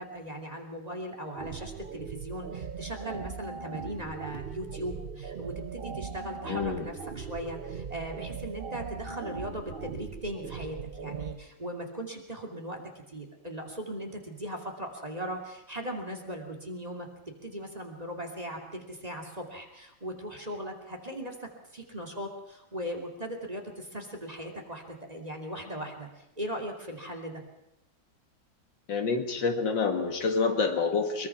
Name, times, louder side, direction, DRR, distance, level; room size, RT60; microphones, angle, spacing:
voice 1, 0.0-17.1 17.4-21.4 21.7-27.4, right 1 dB, 20° right, 3 dB, 2.7 m, -38 dB
sound 1, 1.4-11.3, right 6 dB, 45° right, 0.8 m, -39 dB
voice 2, 6.5-6.9 28.9-31.3, left 4 dB, 75° left, 5 dB, 2.6 m, -27 dB
23.0 x 22.5 x 5.9 m, 0.88 s
omnidirectional pair, 2.0 m